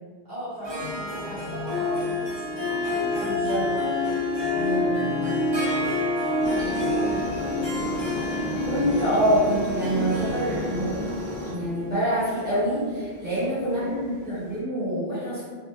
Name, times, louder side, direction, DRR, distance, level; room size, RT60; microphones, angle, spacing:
voice 1, 0.2-3.8 5.7-7.3 13.2-14.0, equal, 60° right, -11 dB, 0.9 m, -40 dB
Harp, 0.6-14.2, left 2 dB, 30° right, 0.6 m, -28 dB
sound 1, 0.8-11.1, left 2 dB, 70° left, 0.8 m, -40 dB
voice 2, 3.3-3.7 4.5-5.4 8.6-10.9 11.5-15.4, right 1 dB, 10° right, -12 dB, 1.3 m, -26 dB
Aircraft, 6.4-11.5, left 1 dB, 15° left, 0.7 m, -33 dB
2.7 x 2.4 x 2.4 m, 1.5 s
omnidirectional pair, 1.0 m